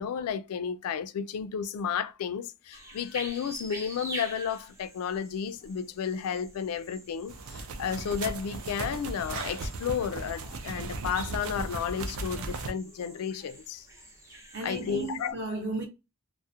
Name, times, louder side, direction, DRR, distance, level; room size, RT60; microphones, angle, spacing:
voice 1, 0.0-13.8 14.6-15.3, left 7 dB, 80° left, 0.3 m, -32 dB
sound 1, 2.7-15.3, right 1 dB, 15° right, 0.6 m, -47 dB
sound 2, 7.3-12.7, right 3 dB, 70° right, 0.4 m, -37 dB
voice 2, 14.5-15.9, right 3 dB, 50° right, 0.7 m, -34 dB
2.3 x 2.0 x 2.6 m
head